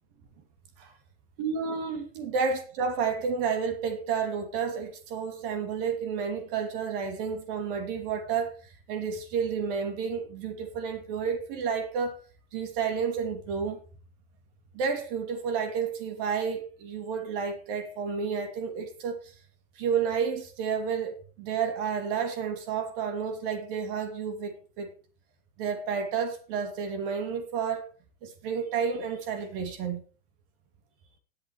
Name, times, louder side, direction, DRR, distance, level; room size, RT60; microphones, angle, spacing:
voice 1, 1.4-12.2 12.5-13.8 14.7-19.3 19.8-24.9 25.6-27.8 28.2-30.0, right 6 dB, 60° right, 2.5 m, -31 dB
17.5 x 7.9 x 3.1 m
supercardioid pair, 130°, 31 cm